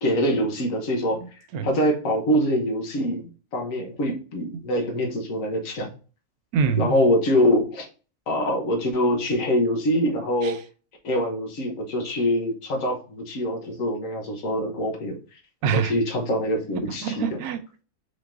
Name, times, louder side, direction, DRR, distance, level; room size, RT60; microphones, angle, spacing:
voice 1, 0.0-1.2 1.6-5.9 6.8-7.9 8.3-10.6 11.0-15.2 15.7-17.3, equal, 65° left, 1.5 m, -24 dB
voice 2, 1.1-1.8 4.5-4.6 6.5-7.0 10.4-10.6 15.6-15.9 16.7-17.8, right 6 dB, 90° right, 1.1 m, -26 dB
5.1 x 3.8 x 2.6 m
omnidirectional pair, 1.5 m